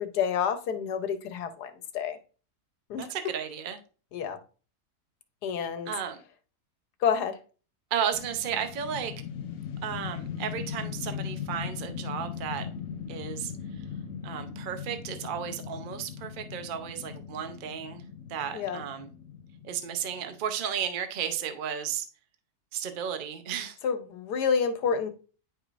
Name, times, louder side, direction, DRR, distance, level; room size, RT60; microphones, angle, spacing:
voice 1, 0.0-2.2 2.9-3.1 4.1-4.4 5.4-5.9 7.0-7.4 18.5-18.8 23.8-25.1, left 7 dB, 90° left, 1.4 m, -29 dB
voice 2, 3.0-3.8 5.9-6.2 7.9-9.1 9.8-12.7 13.1-13.5 14.2-18.0 18.3-19.1 19.6-22.0 22.7-23.8, right 8 dB, 45° right, 0.7 m, -33 dB
sound 1, 8.1-20.3, left 7 dB, 60° left, 1.1 m, -39 dB
10.0 x 4.9 x 2.5 m
omnidirectional pair, 1.7 m